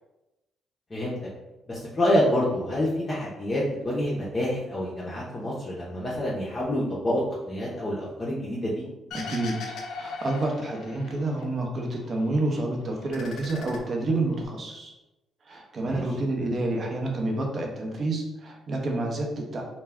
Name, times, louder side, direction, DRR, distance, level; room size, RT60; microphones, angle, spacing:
voice 1, 1.7-7.2 7.5-8.8 15.8-16.0, left 1 dB, 30° left, -6 dB, 0.6 m, -27 dB
sound 1, 9.1-11.4 11.8-12.6 12.9-14.5, left 4 dB, 75° left, 0.4 m, -39 dB
voice 2, 9.1-9.6 10.0-14.9 15.5-19.6, right 2 dB, 45° right, 0 dB, 0.6 m, -29 dB
2.2 x 2.1 x 3.4 m, 1.0 s
cardioid pair, 90°, 0 cm